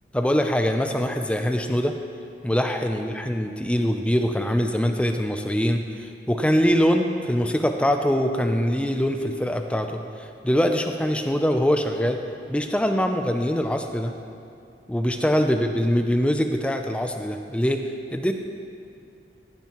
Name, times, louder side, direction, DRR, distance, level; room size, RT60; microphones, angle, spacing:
voice 1, 0.1-1.9 2.4-12.2 12.5-14.2 14.9-17.8 18.1-18.3, equal, 5° left, 5 dB, 0.4 m, -23 dB
14.5 x 9.1 x 3.0 m, 2.5 s
head